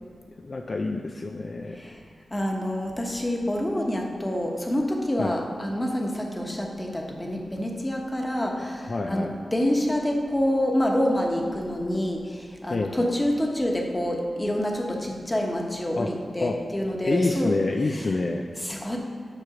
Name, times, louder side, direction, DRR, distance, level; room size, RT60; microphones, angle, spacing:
voice 1, 0.4-2.0 5.2-5.3 8.9-9.4 12.7-12.9 15.9-16.1 16.4-16.6 17.0-18.5, left 3 dB, 45° left, 3 dB, 0.5 m, -27 dB
voice 2, 2.3-17.5 18.6-19.0, left 1 dB, 20° left, 1 dB, 1.3 m, -27 dB
9.8 x 6.0 x 5.0 m, 2.2 s
wide cardioid pair, 85°, 0 cm